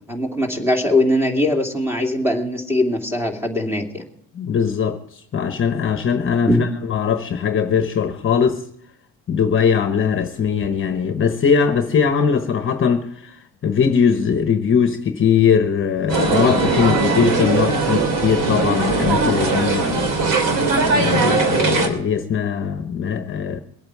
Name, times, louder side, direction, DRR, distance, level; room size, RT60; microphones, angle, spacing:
voice 1, 0.1-4.1 6.5-6.6, left 1 dB, 5° right, 2.5 m, -20 dB
voice 2, 4.3-8.6 9.3-20.1 20.9-23.6, left 6 dB, 40° left, 1.1 m, -20 dB
sound 1, 16.1-21.9, right 3 dB, 75° right, 3.1 m, -19 dB
23.0 x 8.8 x 4.7 m
cardioid pair, 135°, 33 cm